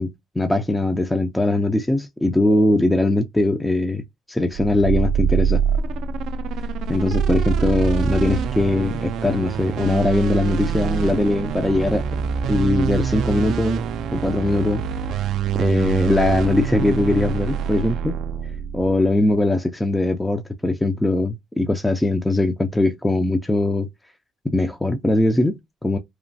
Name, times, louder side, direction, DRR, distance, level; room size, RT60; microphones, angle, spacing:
voice 1, 0.0-5.6 6.9-12.0 12.5-13.8 14.1-14.8 15.5-18.2 18.7-23.9 24.4-26.0, left 2 dB, 10° left, 0.4 m, -21 dB
sound 1, 4.5-19.1, right 7 dB, 75° right, 0.3 m, -25 dB
3.0 x 2.1 x 2.6 m
cardioid pair, 95°, 0 cm